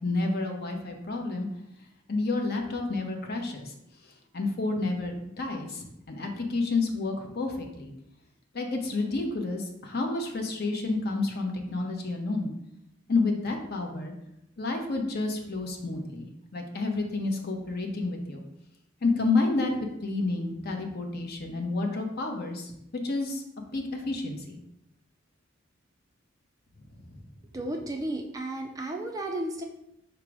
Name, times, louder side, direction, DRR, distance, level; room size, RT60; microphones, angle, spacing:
voice 1, 0.0-1.5 2.1-3.7 4.0-7.9 8.5-12.5 13.1-14.1 14.6-16.3 16.5-18.4 19.0-19.7 20.0-23.4 23.7-24.6 26.9-27.2, left 3 dB, 50° left, 3 dB, 0.6 m, -30 dB
voice 2, 27.5-29.6, right 1 dB, 15° right, 2 dB, 0.3 m, -33 dB
4.6 x 2.0 x 4.6 m, 0.81 s
head